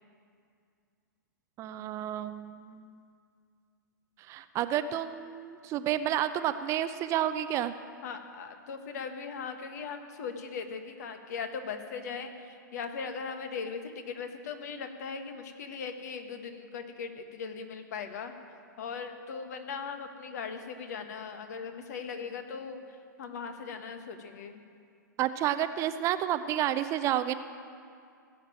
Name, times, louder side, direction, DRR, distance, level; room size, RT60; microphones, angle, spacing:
voice 1, 1.6-2.9 4.3-7.7 25.2-27.4, right 11 dB, 30° right, 11 dB, 0.5 m, -30 dB
voice 2, 8.0-18.3 18.8-24.6, left 5 dB, 55° left, 7 dB, 1.4 m, -39 dB
16.5 x 7.4 x 8.9 m, 2.3 s
figure-of-eight pair, 110°, 11 cm